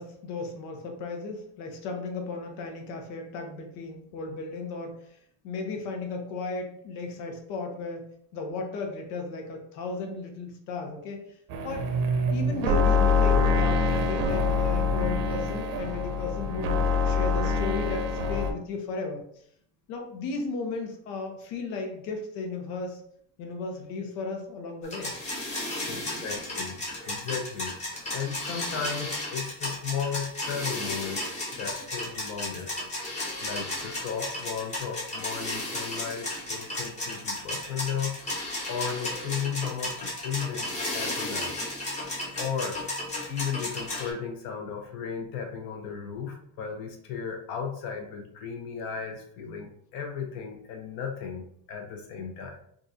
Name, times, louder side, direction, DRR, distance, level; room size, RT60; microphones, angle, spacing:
voice 1, 0.0-5.0 5.4-8.0 8.3-11.2 11.6-11.9 12.3-19.3 19.9-23.0 23.4-25.1 25.8-26.3, left 4 dB, 90° left, 3 dB, 0.9 m, -35 dB
sound 1, 11.5-18.5, left 3 dB, 85° right, 0.8 m, -25 dB
sound 2, 24.8-44.1, left 1 dB, 15° left, 0.7 m, -34 dB
voice 2, 25.9-26.8 27.1-31.2 31.6-38.1 38.7-41.6 42.4-42.8 43.3-51.4 51.7-52.6, left 7 dB, 55° left, 3 dB, 0.8 m, -35 dB
3.7 x 2.5 x 2.7 m, 0.67 s
cardioid pair, 170°, 42 cm